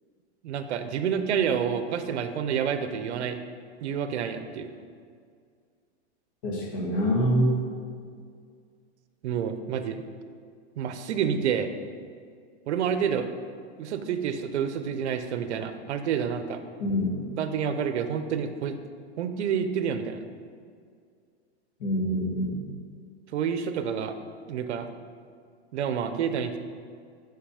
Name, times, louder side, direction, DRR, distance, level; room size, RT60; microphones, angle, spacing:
voice 1, 0.4-3.4 3.8-4.7 9.2-10.0 10.8-11.7 12.7-13.3 13.8-16.6 17.4-18.8 19.2-20.2 23.3-24.1 24.5-24.9 25.7-26.6, right 7 dB, 80° right, 9 dB, 0.7 m, -28 dB
voice 2, 6.4-7.6 16.8-17.2 21.8-22.6, equal, 50° left, -3 dB, 1.8 m, -25 dB
5.9 x 5.8 x 5.0 m, 2.1 s
supercardioid pair, 170°, 34 cm